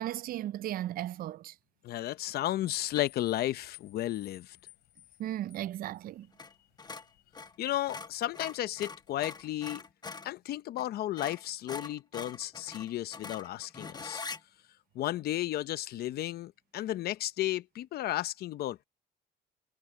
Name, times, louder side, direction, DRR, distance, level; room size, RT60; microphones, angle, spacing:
voice 1, 0.0-1.6 5.2-6.3, right 13 dB, 60° right, 0.5 m, -36 dB
voice 2, 1.8-4.6 7.6-9.8 10.2-14.2 14.9-18.8, left 14 dB, 65° left, 0.8 m, -33 dB
sound 1, 2.7-9.9, left 21 dB, 85° left, 4.7 m, -60 dB
sound 2, 2.9-3.2 6.3-6.5 6.8-10.3 10.8-10.9 11.2-14.4, left 4 dB, 25° left, 1.0 m, -43 dB
cardioid pair, 110°, 17 cm